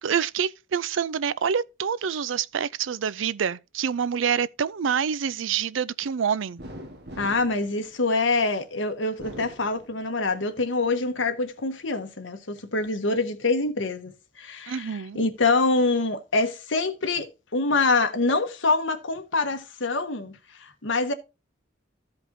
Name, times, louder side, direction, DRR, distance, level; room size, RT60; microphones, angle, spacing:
voice 1, 0.0-6.6 14.7-15.3, right 7 dB, 85° right, 0.5 m, -27 dB
sound 1, 6.6-8.5 9.0-10.4 10.8-11.7, equal, 60° right, 1.4 m, -43 dB
voice 2, 7.2-21.1, left 3 dB, 80° left, 1.3 m, -25 dB
14.5 x 5.2 x 2.7 m
head